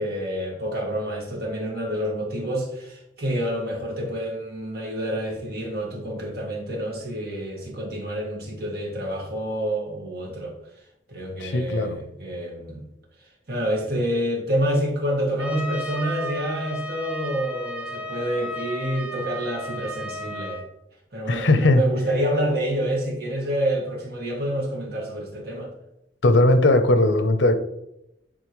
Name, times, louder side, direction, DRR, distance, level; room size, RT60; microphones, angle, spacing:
voice 1, 0.0-10.5 11.1-12.9 13.5-20.6 21.1-25.7, equal, 55° right, -2 dB, 2.0 m, -28 dB
voice 2, 11.4-12.0 21.3-21.8 26.2-27.6, left 2 dB, 85° left, 9 dB, 0.7 m, -18 dB
Trumpet, 15.4-20.7, equal, 5° right, 0.5 m, -34 dB
10.0 x 3.6 x 3.1 m, 0.83 s
head